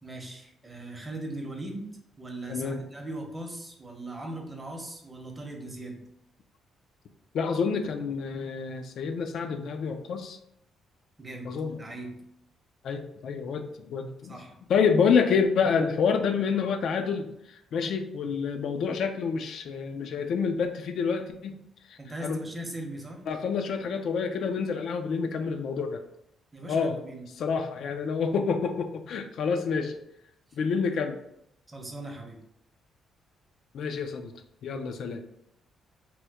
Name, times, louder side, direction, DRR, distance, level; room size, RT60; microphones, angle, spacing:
voice 1, 0.0-1.9 2.2-6.0 11.2-11.5 11.8-12.2 14.2-14.5 22.0-23.2 26.5-27.3 31.7-32.4, right 1 dB, 20° right, 2 dB, 0.7 m, -39 dB
voice 2, 2.5-2.8 7.3-10.4 11.5-11.8 12.8-14.4 14.7-21.6 21.9-22.4 23.3-26.0 26.7-27.0 27.4-29.9 30.6-31.2 33.7-34.3 34.6-35.2, left 5 dB, 70° left, 6 dB, 0.3 m, -28 dB
2.9 x 2.1 x 3.4 m, 0.76 s
cardioid pair, 90°, 0 cm